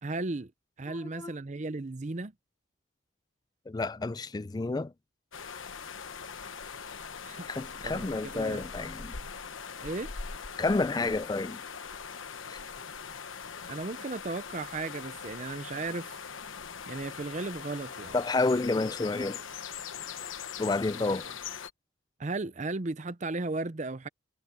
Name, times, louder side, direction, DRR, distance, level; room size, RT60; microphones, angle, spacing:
voice 1, 0.0-0.5 0.8-2.3 7.2-7.5 7.8-8.1 8.3-8.6 9.8-10.1 13.7-16.2 16.9-18.2 22.2-24.1, right 3 dB, 35° right, 0.6 m, -35 dB
voice 2, 0.9-1.3 3.7-4.9 7.5-9.2 10.6-11.6 12.5-12.6 18.1-19.4 20.6-21.3, left 3 dB, 20° left, 0.3 m, -30 dB
sound 1, 5.3-21.7, left 6 dB, 85° left, 1.2 m, -41 dB
head